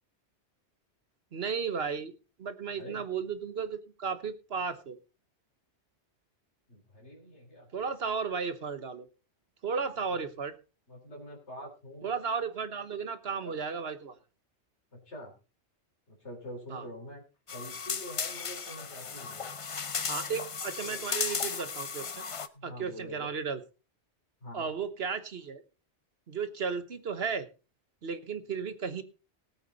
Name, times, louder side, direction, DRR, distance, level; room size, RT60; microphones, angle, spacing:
voice 1, 1.3-2.1 2.4-5.0 7.7-9.1 9.6-10.5 12.0-14.2 16.7-16.8 20.1-22.2 22.6-23.6 24.5-25.6 26.3-27.5 28.0-29.0, right 5 dB, 60° right, 11 dB, 1.4 m, -34 dB
voice 2, 6.7-7.7 10.1-10.2 10.9-12.1 13.4-13.6 14.9-15.3 16.1-17.2 17.5-19.6 20.8-21.1 22.5-23.3 24.4-24.7, equal, 70° left, 0 dB, 3.9 m, -45 dB
sound 1, 17.5-22.5, left 5 dB, 35° left, 0.6 m, -35 dB
18.0 x 8.3 x 4.0 m, 0.32 s
omnidirectional pair, 1.2 m